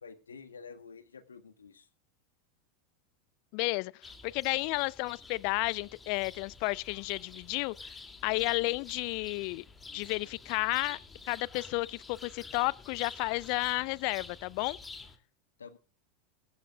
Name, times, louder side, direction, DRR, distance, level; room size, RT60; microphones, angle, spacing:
voice 1, 0.0-1.9 15.6-15.8, left 5 dB, 75° left, 1.6 m, -49 dB
voice 2, 3.5-7.9 8.2-9.6 9.9-11.0 11.3-14.8, left 25 dB, 50° left, 0.5 m, -32 dB
sound 1, 4.0-15.2, left 4 dB, 15° left, 2.6 m, -49 dB
21.5 x 12.5 x 2.3 m
figure-of-eight pair, 85°, 0 cm